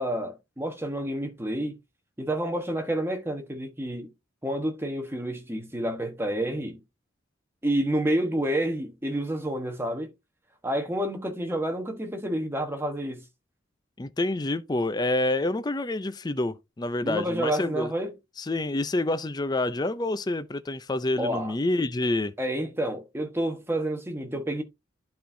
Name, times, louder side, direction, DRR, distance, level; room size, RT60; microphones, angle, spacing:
voice 1, 0.0-1.8 2.2-4.1 4.4-6.8 7.6-10.1 10.6-13.2 17.0-18.1 21.2-21.5 22.4-24.6, right 1 dB, 10° right, 1.1 m, -29 dB
voice 2, 14.0-17.9 18.4-22.3, left 2 dB, 20° left, 0.4 m, -27 dB
11.5 x 4.3 x 2.6 m
head